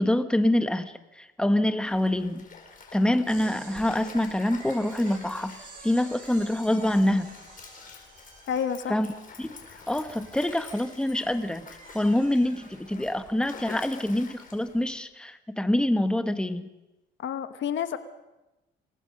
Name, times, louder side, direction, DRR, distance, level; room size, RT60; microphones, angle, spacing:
voice 1, 0.0-2.4 2.9-5.6 5.8-7.3 8.9-9.1 9.4-9.6 9.9-11.7 11.9-16.7, left 1 dB, 5° left, 9 dB, 1.3 m, -25 dB
Stream, 1.9-15.0, left 4 dB, 45° left, 5.0 m, -48 dB
sound 1, 3.3-13.2, right 3 dB, 40° right, 7.7 m, -49 dB
voice 2, 8.5-9.0 17.2-18.0, left 8 dB, 70° left, 11 dB, 1.3 m, -29 dB
27.0 x 19.0 x 5.4 m, 0.99 s
cardioid pair, 90°, 20 cm